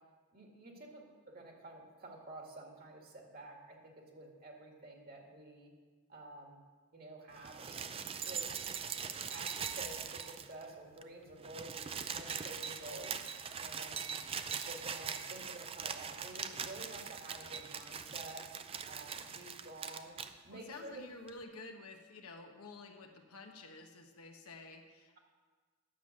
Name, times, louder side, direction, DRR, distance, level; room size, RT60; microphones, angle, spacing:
voice 1, 0.3-5.7 6.1-6.6 6.9-7.8 8.2-8.5 9.2-13.2 13.6-14.1 14.7-18.5 18.9-20.1 20.4-21.0, right 2 dB, 40° right, 1 dB, 1.9 m, -50 dB
sound 1, 7.4-10.7 11.0-11.1 11.3-20.3 21.3-21.4, right 7 dB, 25° right, 0.4 m, -41 dB
sound 2, 9.5-14.2, equal, 80° right, 3.9 m, -68 dB
voice 2, 20.5-25.2, left 3 dB, 80° left, 4 dB, 1.2 m, -51 dB
10.0 x 7.3 x 6.4 m, 1.4 s
head